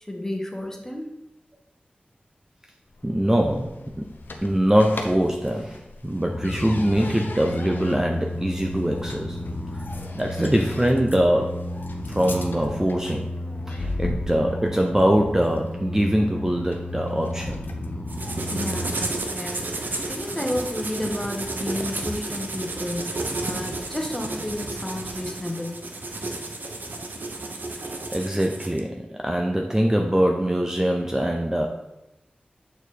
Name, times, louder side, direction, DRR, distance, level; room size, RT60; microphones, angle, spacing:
voice 1, 0.1-1.2 18.5-19.8 20.0-25.8, left 1 dB, 15° left, 1 dB, 1.3 m, -31 dB
sound 1, 2.9-18.0, left 2 dB, 85° left, 0.7 m, -39 dB
voice 2, 3.0-4.1 4.4-5.8 6.0-9.4 9.7-9.8 10.1-11.6 12.1-13.3 13.7-17.6 28.1-31.7, equal, 15° right, 2 dB, 0.6 m, -23 dB
sound 2, 6.3-18.9, left 1 dB, 40° left, 0.6 m, -33 dB
sound 3, 18.1-28.8, right 2 dB, 70° right, 0.8 m, -32 dB
7.1 x 4.3 x 4.2 m, 0.92 s
wide cardioid pair, 55°, 3 cm